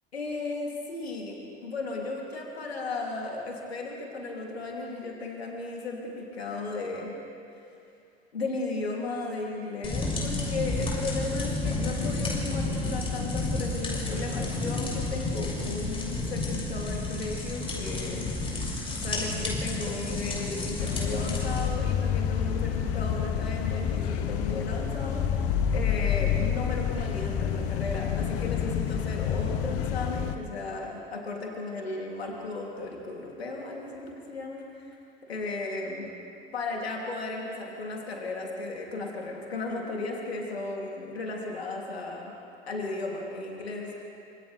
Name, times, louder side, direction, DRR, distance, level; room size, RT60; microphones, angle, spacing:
voice 1, 0.1-7.1 8.3-18.3 19.0-25.2 25.7-35.0 35.3-36.1 36.5-42.3 42.7-44.1, left 3 dB, 75° left, -1 dB, 3.3 m, -35 dB
sound 1, 9.8-21.7, left 2 dB, 15° left, 6.6 m, -31 dB
sound 2, 20.8-30.4, left 8 dB, 45° left, 1.3 m, -28 dB
27.5 x 26.5 x 3.5 m, 2.7 s
figure-of-eight pair, 65°, 31 cm